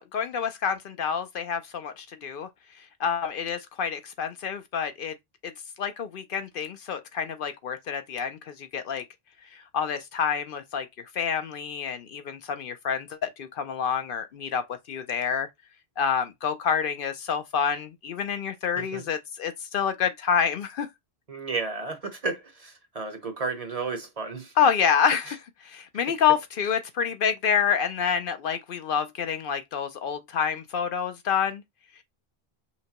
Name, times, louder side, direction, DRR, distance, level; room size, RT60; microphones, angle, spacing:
voice 1, 0.0-2.5 3.0-5.1 5.4-5.5 5.8-9.0 9.5-10.9 11.1-15.5 16.0-20.9 24.6-31.6, left 7 dB, 65° left, 0.7 m, -28 dB
voice 2, 21.3-24.5, right 4 dB, 40° right, 0.9 m, -33 dB
5.7 x 2.2 x 2.8 m
omnidirectional pair, 1.0 m